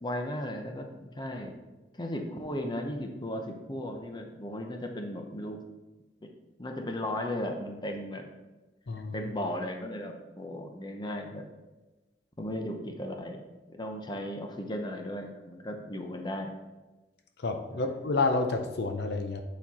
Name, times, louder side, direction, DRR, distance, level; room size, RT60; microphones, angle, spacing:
voice 1, 0.0-1.5 1.9-5.6 6.2-6.3 6.6-8.3 9.1-11.5 12.4-13.4 13.7-16.5 17.7-17.8, left 1 dB, 25° left, 4 dB, 0.8 m, -36 dB
voice 2, 8.9-9.3 17.4-19.4, left 3 dB, 65° left, 6 dB, 0.6 m, -29 dB
8.7 x 4.2 x 4.2 m, 1.1 s
head